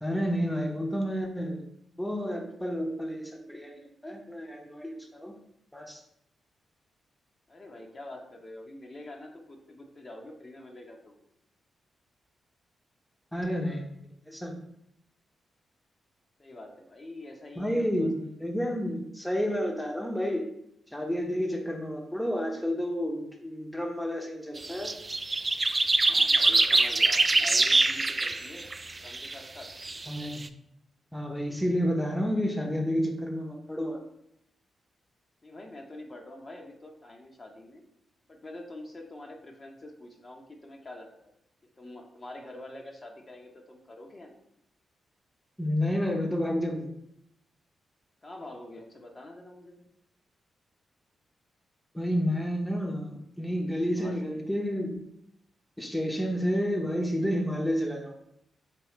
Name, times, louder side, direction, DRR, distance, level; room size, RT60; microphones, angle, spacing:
voice 1, 0.0-1.6 2.0-5.3 5.7-6.0 13.3-13.9 14.3-14.5 17.6-20.5 20.9-25.0 30.1-30.4 31.1-34.0 45.6-46.9 51.9-55.0 55.8-58.2, equal, 5° left, 2 dB, 0.8 m, -30 dB
voice 2, 7.5-11.2 16.4-19.0 26.0-28.7 29.0-29.7 35.4-37.8 38.3-41.3 41.8-44.4 48.2-49.9 53.9-54.4, left 1 dB, 40° left, 1 dB, 0.8 m, -46 dB
sound 1, 24.6-29.3 29.6-30.5, right 3 dB, 35° right, 0.3 m, -24 dB
4.5 x 3.1 x 3.0 m, 0.76 s
supercardioid pair, 45°, 0 cm